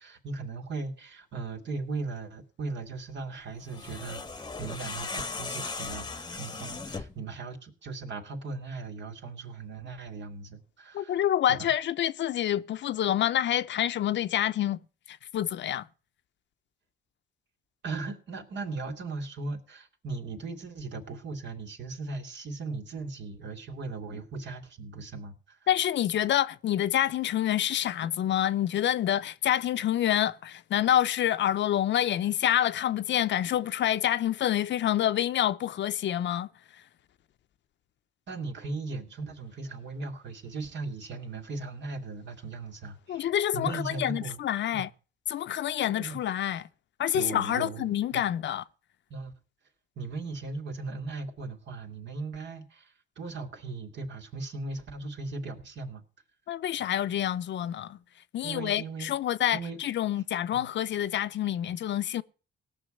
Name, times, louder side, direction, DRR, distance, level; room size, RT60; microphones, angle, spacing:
voice 1, 0.0-11.2 11.5-11.7 17.8-25.6 38.3-44.4 44.7-44.9 45.8-46.2 47.1-48.2 49.1-49.3 50.0-56.0 58.4-59.1 59.5-59.8 60.5-60.7, right 3 dB, 65° right, 3.1 m, -38 dB
sound 1, 3.6-7.2, left 4 dB, 20° left, 1.0 m, -37 dB
voice 2, 10.9-14.8 15.1-15.9 25.7-36.8 43.1-44.9 45.3-46.7 47.0-48.6 56.5-58.0 58.3-62.2, left 11 dB, 65° left, 0.8 m, -27 dB
17.5 x 6.3 x 9.2 m
cardioid pair, 90°, 20 cm